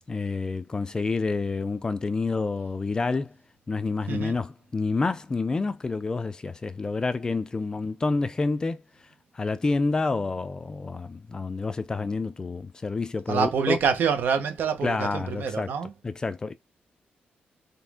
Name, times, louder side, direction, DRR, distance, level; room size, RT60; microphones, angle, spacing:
voice 1, 0.1-3.3 3.7-8.8 9.3-13.8 14.8-15.7 16.0-16.5, left 3 dB, 20° left, 0.4 m, -28 dB
voice 2, 13.3-15.9, right 6 dB, 70° right, 1.1 m, -26 dB
4.2 x 3.4 x 3.6 m
wide cardioid pair, 175°, 3 cm